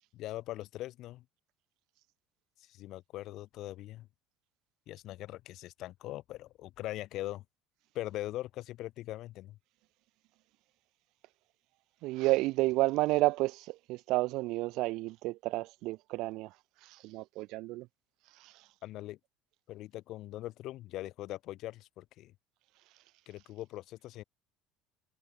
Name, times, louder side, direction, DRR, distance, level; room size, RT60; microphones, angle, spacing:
voice 1, 0.1-1.2 2.6-4.1 4.9-7.4 7.9-9.6 18.8-19.2 19.7-22.3 23.3-24.2, left 15 dB, 60° left, 5.0 m, -41 dB
voice 2, 12.0-16.5 16.8-17.9 18.4-18.5, right 20 dB, 70° right, 2.2 m, -31 dB
supercardioid pair, 110°, 0 cm